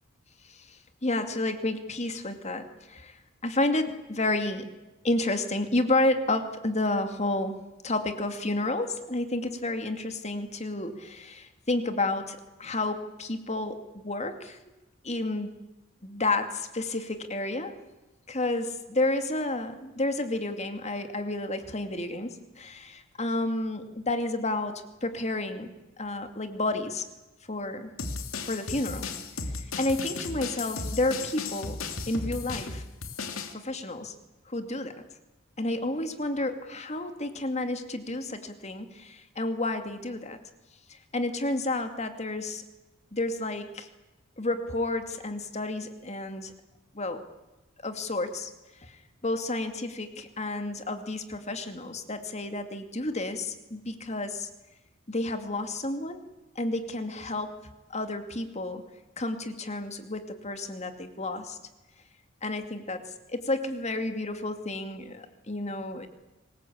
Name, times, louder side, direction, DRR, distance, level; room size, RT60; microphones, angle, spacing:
voice 1, 0.4-4.7 5.0-14.6 15.0-15.5 16.0-17.7 18.3-27.1 27.5-27.9 28.4-29.1 29.5-31.8 32.1-32.8 33.5-34.1 34.5-34.9 35.6-40.4 40.9-42.6 43.1-43.9 44.4-46.5 46.9-47.2 47.8-48.5 48.8-54.5 55.1-56.2 56.6-57.5 57.9-58.8 59.2-61.6 62.4-63.0 63.3-66.1, left 2 dB, 35° left, 8 dB, 2.4 m, -31 dB
sound 1, 28.0-33.5, left 4 dB, 85° left, 2.8 m, -35 dB
25.0 x 21.0 x 8.7 m, 1.0 s
head